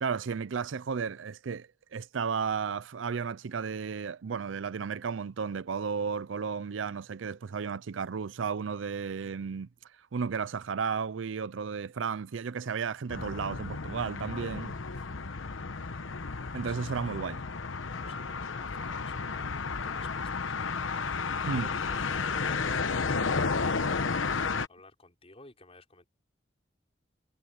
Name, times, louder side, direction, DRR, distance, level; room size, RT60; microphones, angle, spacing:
voice 1, 0.0-9.7 10.1-14.7 16.5-17.4 21.5-21.7, right 6 dB, 75° right, 0.5 m, -33 dB
sound 1, 13.1-24.7, left 4 dB, 90° left, 1.1 m, -32 dB
voice 2, 14.9-15.2 16.6-17.1 18.0-21.0 21.4-24.2 24.7-26.1, left 2 dB, 30° left, 5.0 m, -53 dB
head